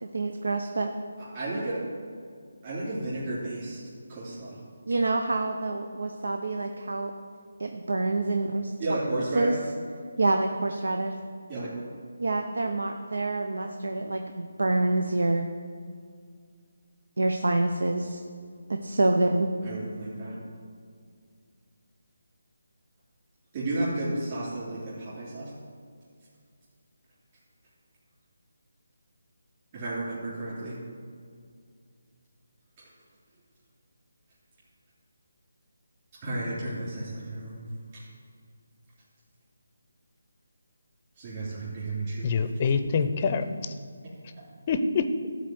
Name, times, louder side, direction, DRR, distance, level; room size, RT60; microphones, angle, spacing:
voice 1, 0.0-0.9 4.9-7.1 7.6-8.7 9.3-9.6 10.2-11.1 12.2-15.5 17.2-18.2 18.7-19.5, right 2 dB, 85° right, 5 dB, 0.7 m, -27 dB
voice 2, 1.3-1.8 2.6-3.8 4.1-4.6 8.8-9.5 11.5-11.7 19.6-20.4 23.5-25.5 29.7-30.8 36.2-37.5 41.2-42.3, right 2 dB, 30° right, -10 dB, 3.1 m, -32 dB
voice 3, 42.2-43.7 44.7-45.3, left 5 dB, 30° left, 9 dB, 0.6 m, -26 dB
12.5 x 4.2 x 7.8 m, 2.1 s
figure-of-eight pair, 165°, 0 cm